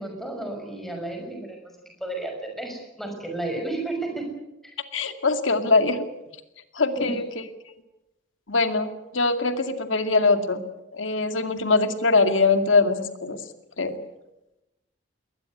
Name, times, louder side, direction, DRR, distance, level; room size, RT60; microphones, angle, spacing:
voice 1, 0.0-1.7 2.0-4.2 4.6-4.7 7.0-7.2, right 2 dB, ahead, 3 dB, 6.0 m, -32 dB
voice 2, 4.9-6.1 6.7-7.2 8.5-10.6 10.9-13.4 13.8-14.0, left 3 dB, 80° left, 8 dB, 2.3 m, -22 dB
21.5 x 19.5 x 9.7 m, 0.93 s
head